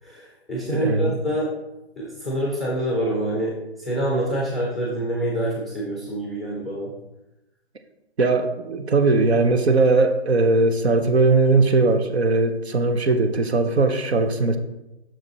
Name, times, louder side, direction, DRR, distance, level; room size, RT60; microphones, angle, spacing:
voice 1, 0.0-1.5 2.0-6.9, right 1 dB, ahead, -3 dB, 0.5 m, -26 dB
voice 2, 0.7-1.2 8.2-14.6, right 3 dB, 70° right, 7 dB, 0.9 m, -19 dB
6.1 x 5.0 x 4.0 m, 0.94 s
figure-of-eight pair, 135°, 34 cm